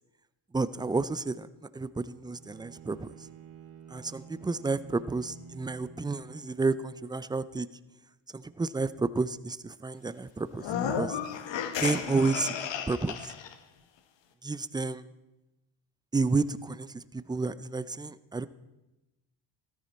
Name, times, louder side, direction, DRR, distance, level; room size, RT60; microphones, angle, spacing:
voice 1, 0.5-1.5 1.7-3.1 3.9-7.7 8.3-10.7 11.0-11.2 11.8-13.3 14.4-15.0 16.1-18.5, right 3 dB, 10° right, 15 dB, 0.4 m, -31 dB
Bowed string instrument, 2.2-7.1, right 6 dB, 70° right, 1.9 m, -50 dB
sound 1, 10.6-13.5, left 7 dB, 60° left, 1.2 m, -33 dB
13.5 x 13.0 x 4.2 m, 1.0 s
supercardioid pair, 75°, 49 cm